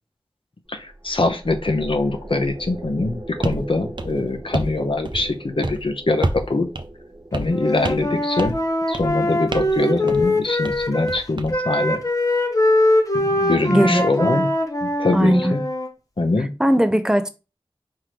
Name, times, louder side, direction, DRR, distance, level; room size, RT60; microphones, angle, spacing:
voice 1, 0.7-6.7 7.3-8.6 8.9-12.0 13.1-14.5 14.8-15.6 16.2-16.5, left 2 dB, 70° left, 0.8 m, -23 dB
sound 1, 0.7-12.1, right 1 dB, 30° right, 1.1 m, -40 dB
sound 2, 3.4-3.6 4.0-4.8 5.0-5.4 5.6-5.8 6.2-6.5 6.7-6.9 7.3-7.6 7.8-8.1 8.4-8.6 8.9-9.2 9.5-9.8 10.1-10.3 10.6-11.5, right 2 dB, 55° right, 0.6 m, -28 dB
Wind instrument woodwind instrument, 7.5-11.2 11.5-15.9, left 1 dB, 35° left, 0.9 m, -22 dB
voice 2, 13.7-14.5 15.1-15.5 16.6-17.3, equal, 5° right, 0.6 m, -19 dB
4.6 x 3.7 x 3.1 m
wide cardioid pair, 50°, 9 cm